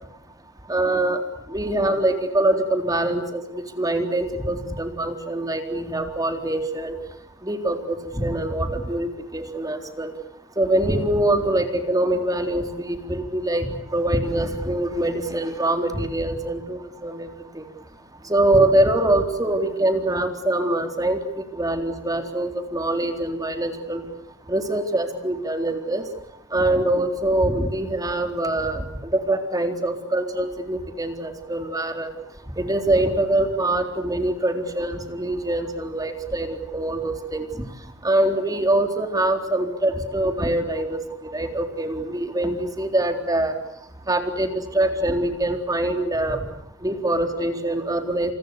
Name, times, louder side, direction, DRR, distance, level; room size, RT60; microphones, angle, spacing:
voice 1, 0.7-1.2 1.5-7.0 7.4-10.1 10.6-13.7 13.9-17.3 17.5-17.6 18.3-21.2 21.5-24.0 24.5-26.0 26.5-32.1 32.6-37.5 38.0-41.0 41.3-43.5 44.1-46.4 46.8-48.3, right 1 dB, 20° right, 6 dB, 3.9 m, -24 dB
29.5 x 28.5 x 6.9 m, 0.77 s
head